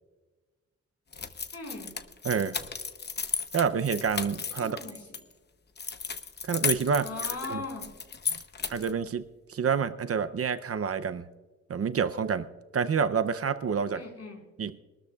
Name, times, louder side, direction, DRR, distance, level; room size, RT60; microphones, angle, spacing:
sound 1, 1.1-5.2 5.8-9.0, left 5 dB, 35° left, 0.8 m, -34 dB
voice 1, 1.5-1.9 4.6-5.2 7.0-7.9 13.9-14.4, left 3 dB, 55° left, 2 dB, 4.6 m, -39 dB
voice 2, 2.2-2.6 3.5-4.8 6.4-7.1 7.5-7.6 8.7-11.3 11.7-12.5 12.7-14.0 14.6-14.7, right 6 dB, 50° right, 11 dB, 0.6 m, -28 dB
22.5 x 13.0 x 2.4 m, 1.3 s
wide cardioid pair, 140°, 30 cm